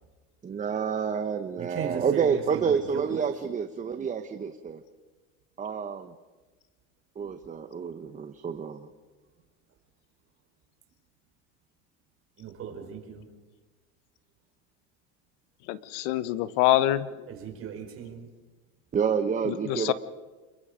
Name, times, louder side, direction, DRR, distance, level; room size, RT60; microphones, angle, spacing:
voice 1, 0.4-4.8 5.6-6.1 7.2-8.9 18.9-19.9, right 6 dB, 20° right, 8 dB, 1.0 m, -29 dB
voice 2, 1.6-3.1 12.4-13.2 17.3-18.3, right 7 dB, 40° right, 3 dB, 4.9 m, -37 dB
voice 3, 15.7-17.1 19.5-19.9, left 14 dB, 65° left, 15 dB, 1.0 m, -25 dB
28.0 x 22.5 x 5.1 m, 1.3 s
supercardioid pair, 125°, 34 cm